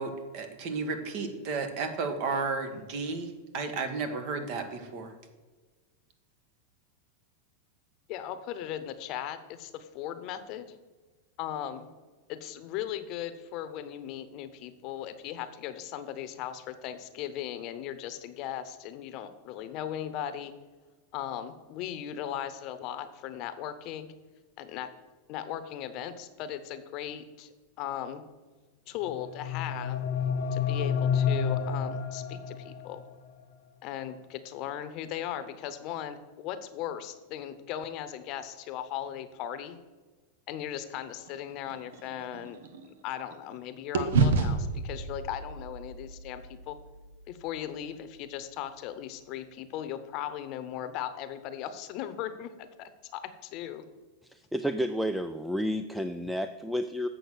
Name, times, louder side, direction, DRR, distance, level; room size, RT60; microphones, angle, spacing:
voice 1, 0.0-5.1, right 4 dB, 50° right, 7 dB, 1.6 m, -33 dB
voice 2, 8.1-10.8 11.4-11.9 12.3-20.5 21.1-24.1 24.6-24.9 25.3-28.2 28.9-30.0 30.5-33.0 33.8-39.8 40.5-42.6 43.0-46.8 47.3-53.8, left 10 dB, 45° left, 11 dB, 0.9 m, -38 dB
sound 1, 29.1-33.0, left 7 dB, 75° left, 0.9 m, -30 dB
sound 2, 41.2-43.6 43.9-48.2, right 4 dB, 85° right, 1.1 m, -31 dB
voice 3, 54.3-57.1, equal, 5° right, 9 dB, 0.4 m, -31 dB
8.3 x 6.4 x 6.2 m, 1.3 s
supercardioid pair, 135°, 0 cm